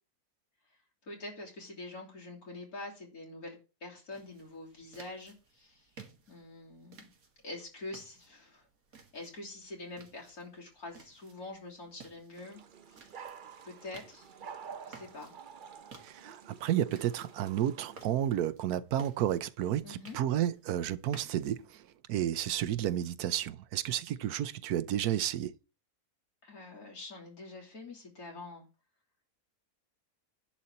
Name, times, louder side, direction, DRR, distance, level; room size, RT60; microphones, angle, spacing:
voice 1, 1.0-5.9 6.3-7.1 7.4-8.7 9.1-12.6 12.9-13.1 13.6-14.3 14.8-15.3 19.8-20.2 26.4-28.7, left 2 dB, 70° left, 3.5 m, -45 dB
sound 1, 4.1-21.9, right 4 dB, 65° right, 2.2 m, -57 dB
sound 2, 12.4-18.1, right 6 dB, 45° right, 0.6 m, -49 dB
voice 2, 16.0-21.8 22.1-25.5, right 11 dB, 80° right, 1.2 m, -31 dB
10.5 x 4.2 x 7.8 m
omnidirectional pair, 1.6 m